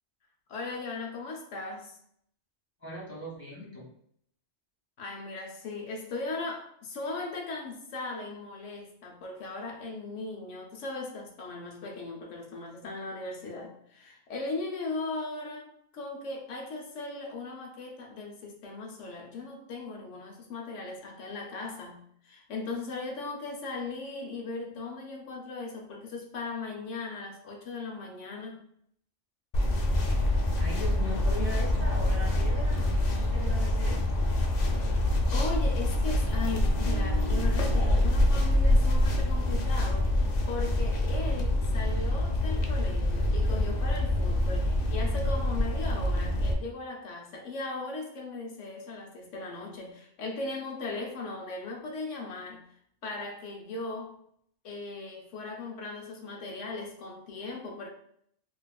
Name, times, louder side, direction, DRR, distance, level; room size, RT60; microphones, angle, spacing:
voice 1, 0.5-2.0 5.0-28.6 34.9-52.6 53.0-54.2 54.6-57.9, left 3 dB, 80° left, 0 dB, 1.0 m, -38 dB
voice 2, 2.8-3.8 30.6-34.0, left 1 dB, 10° right, -7 dB, 1.4 m, -39 dB
sound 1, 29.5-46.5, left 1 dB, 60° left, 0.4 m, -26 dB
sound 2, 36.7-39.9 40.2-40.5, right 7 dB, 60° right, 0.9 m, -45 dB
4.0 x 2.4 x 2.3 m, 0.67 s
omnidirectional pair, 1.2 m